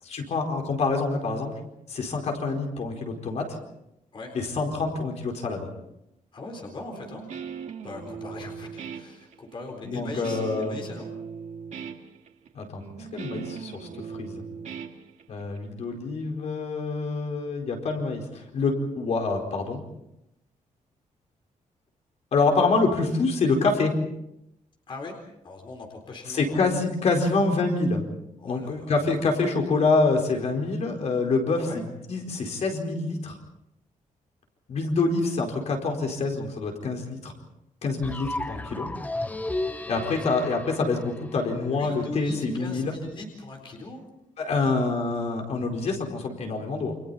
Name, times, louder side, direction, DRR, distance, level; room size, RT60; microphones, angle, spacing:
voice 1, 0.0-1.5 1.9-3.6 4.3-5.7 9.8-10.7 12.5-14.4 15.3-19.8 22.3-23.9 26.3-28.0 28.4-31.7 32.1-33.4 34.7-37.3 37.8-38.9 39.9-42.9 44.4-46.9, left 3 dB, 55° left, 2 dB, 4.6 m, -26 dB
voice 2, 6.3-7.2 7.8-11.1 24.9-25.2 25.4-26.6 27.2-27.3 28.4-29.2 31.5-31.8 40.0-40.2 41.6-44.0 44.5-44.7, left 2 dB, 40° left, 1 dB, 4.0 m, -40 dB
Guitar, 6.9-15.6, right 7 dB, 60° right, 2.1 m, -39 dB
sound 1, 38.0-42.0, left 2 dB, 10° left, 0.7 m, -34 dB
29.5 x 27.5 x 4.2 m, 0.82 s
wide cardioid pair, 170°, 14 cm